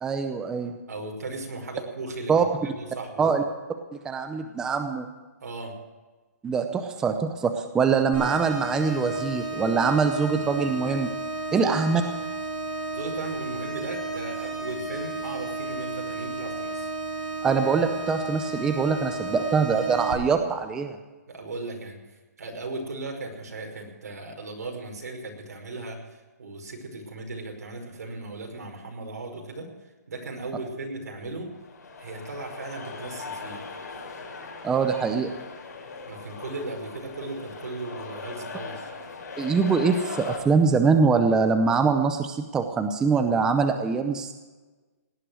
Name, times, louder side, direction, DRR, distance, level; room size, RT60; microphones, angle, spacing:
voice 1, 0.0-0.7 2.3-2.4 3.2-3.4 4.0-5.1 6.4-11.1 11.5-12.0 17.4-21.0 34.6-35.3 39.4-44.3, right 5 dB, 5° right, 7 dB, 0.6 m, -23 dB
voice 2, 0.9-3.2 5.4-5.7 11.5-11.7 12.9-16.9 21.3-22.0 22.4-29.7 30.1-31.5 32.0-33.6 36.1-38.9, right 2 dB, 75° right, 3 dB, 5.2 m, -37 dB
sound 1, 8.1-20.1, right 2 dB, 30° right, 6.7 m, -33 dB
sound 2, 31.4-40.4, left 4 dB, 80° left, 5.3 m, -39 dB
18.0 x 11.0 x 6.2 m, 1.3 s
hypercardioid pair, 165°, 9 cm